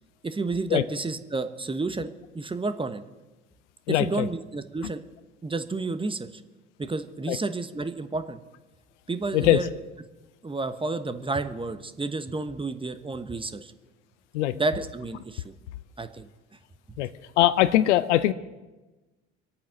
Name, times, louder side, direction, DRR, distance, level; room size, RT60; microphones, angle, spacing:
voice 1, 0.2-2.1 2.3-3.0 3.9-5.0 5.4-6.4 6.8-8.4 9.1-9.7 10.4-13.7 14.5-15.5 16.0-16.3, right 3 dB, 15° right, 10 dB, 1.1 m, -30 dB
voice 2, 3.9-4.3 7.3-7.4 9.3-9.6 14.3-14.5 17.0-17.1 17.4-18.3, left 14 dB, 75° left, 14 dB, 0.8 m, -21 dB
24.5 x 8.6 x 6.5 m, 1.1 s
figure-of-eight pair, 65°, 36 cm